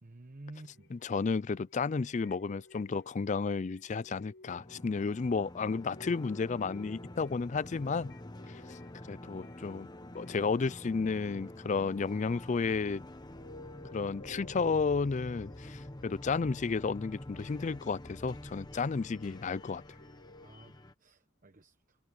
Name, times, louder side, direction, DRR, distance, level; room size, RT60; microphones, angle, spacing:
voice 1, 0.0-0.9 5.0-5.1 20.4-22.0, right 1 dB, 40° right, 1.0 m, -52 dB
sound 1, 0.6-16.8 17.3-20.5, left 2 dB, 65° left, 4.8 m, -57 dB
voice 2, 0.9-8.1 8.5-8.8 9.1-9.9 10.1-13.0 13.9-19.8, left 4 dB, 35° left, 0.4 m, -32 dB
sound 2, 4.6-20.9, left 1 dB, 20° left, 1.1 m, -47 dB
head